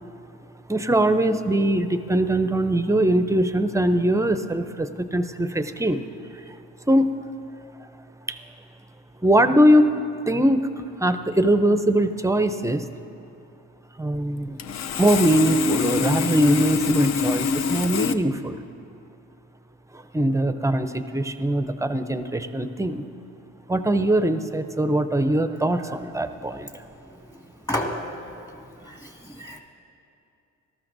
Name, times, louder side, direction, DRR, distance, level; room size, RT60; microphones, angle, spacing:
voice 1, 0.7-6.0 6.9-7.1 7.8-7.9 8.3-8.4 9.2-9.9 10.3-10.7 11.0-12.9 14.0-14.6 15.0-18.6 19.9-23.0 23.7-26.7, right 1 dB, 10° right, 10 dB, 0.5 m, -21 dB
Sawing, 14.1-14.2 14.6-18.1, left 6 dB, 60° left, 0.6 m, -25 dB
voice 2, 27.7-28.1 28.4-28.5 28.8-29.6, left 1 dB, 10° left, 1 dB, 1.8 m, -30 dB
18.5 x 13.5 x 2.6 m, 2.7 s
cardioid pair, 90°, 30 cm